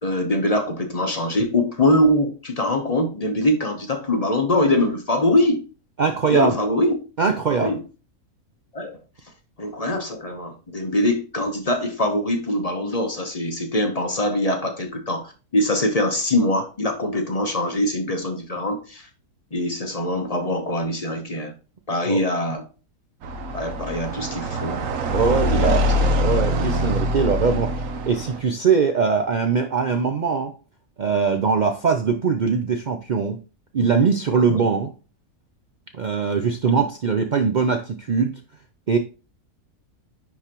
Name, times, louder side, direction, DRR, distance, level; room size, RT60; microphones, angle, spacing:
voice 1, 0.0-5.6 6.3-6.9 7.6-7.8 8.7-9.0 9.6-19.1 19.5-21.5 21.9-22.6 23.5-24.8 25.5-25.7 34.3-34.6, left 1 dB, 30° left, 0.9 m, -23 dB
voice 2, 6.0-6.6 7.2-7.8 22.1-22.2 25.1-30.5 31.0-33.4 33.7-34.9 35.9-38.4 38.9-39.0, right 5 dB, 80° right, 0.4 m, -21 dB
sound 1, 23.2-28.4, equal, 65° right, 1.1 m, -23 dB
9.9 x 4.0 x 2.9 m
omnidirectional pair, 1.6 m